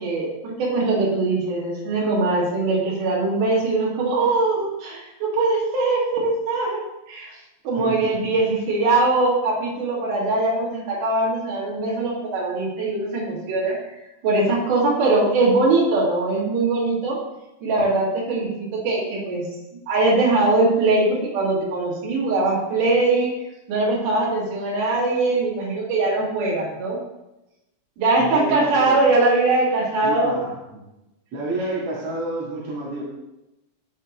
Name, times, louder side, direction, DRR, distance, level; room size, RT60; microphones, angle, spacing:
voice 1, 0.0-6.8 7.1-7.3 7.6-17.2 17.6-19.4 19.9-23.3 23.7-27.0 28.0-30.4, right 2 dB, 65° right, -5 dB, 3.7 m, -21 dB
voice 2, 7.8-8.1 8.3-8.5 28.2-29.0 30.0-30.8 31.3-33.0, right 2 dB, 45° right, -6 dB, 2.6 m, -29 dB
11.5 x 5.6 x 3.1 m, 0.95 s
omnidirectional pair, 4.2 m